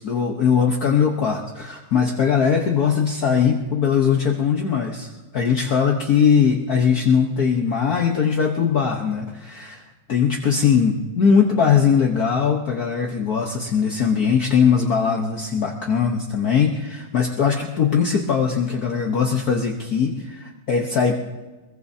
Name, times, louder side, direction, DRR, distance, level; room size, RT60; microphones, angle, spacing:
voice 1, 0.0-9.8 10.1-21.2, left 6 dB, 50° left, 0 dB, 1.4 m, -20 dB
23.5 x 22.5 x 2.8 m, 1.2 s
omnidirectional pair, 2.3 m